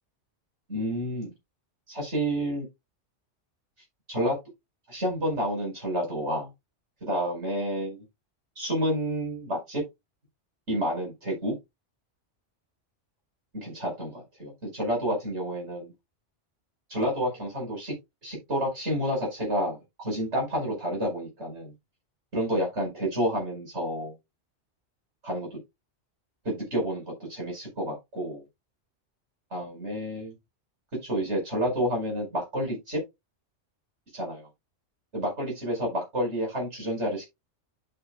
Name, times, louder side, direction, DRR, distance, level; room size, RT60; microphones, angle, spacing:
voice 1, 0.7-1.3 1.9-2.7 4.1-4.4 4.9-6.5 7.0-8.0 8.6-9.8 10.7-11.6 13.5-15.9 16.9-18.0 18.2-21.7 22.3-24.1 25.2-25.6 26.5-28.4 29.5-30.3 31.0-32.2 32.5-33.0 34.1-34.5 35.1-37.3, equal, 65° right, 5.4 m, -29 dB
11.5 x 6.1 x 2.3 m
omnidirectional pair, 1.2 m